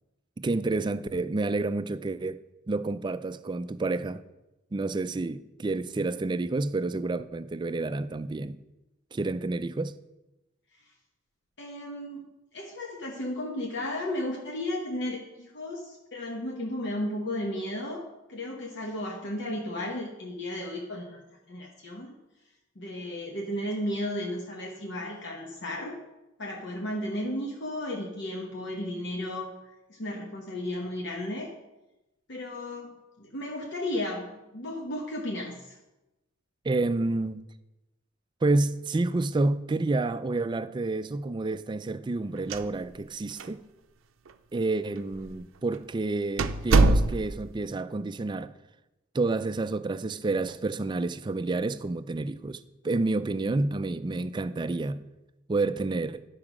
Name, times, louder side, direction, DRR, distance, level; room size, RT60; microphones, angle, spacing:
voice 1, 0.4-4.2 4.7-8.6 9.1-10.0 36.6-37.4 38.4-43.6 44.5-48.5 49.1-55.0 55.5-56.3, right 2 dB, 25° right, 0.3 m, -29 dB
voice 2, 11.6-12.2 12.5-21.2 21.5-22.2 22.8-25.9 26.4-29.5 29.9-31.5 32.3-35.8, left 1 dB, 60° left, 1.1 m, -34 dB
sound 1, 42.4-43.1 43.4-43.5 44.3-44.4 45.1-45.3 45.7-45.8 46.4-47.5, right 2 dB, 80° right, 0.5 m, -23 dB
11.0 x 4.8 x 6.0 m
head